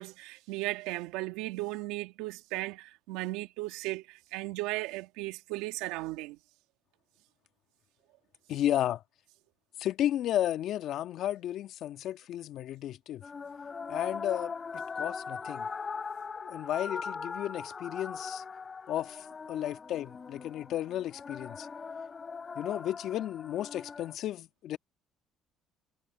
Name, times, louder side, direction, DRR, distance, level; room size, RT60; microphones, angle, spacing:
voice 1, 0.0-6.4, right 19 dB, 80° right, 2.1 m, -36 dB
voice 2, 8.5-9.0 9.8-13.2 13.9-15.7 16.4-18.4 18.9-21.7 22.5-24.8, left 12 dB, 65° left, 1.6 m, -33 dB
sound 1, 13.2-24.1, left 5 dB, 35° left, 2.8 m, -40 dB
supercardioid pair, 70°, 0 cm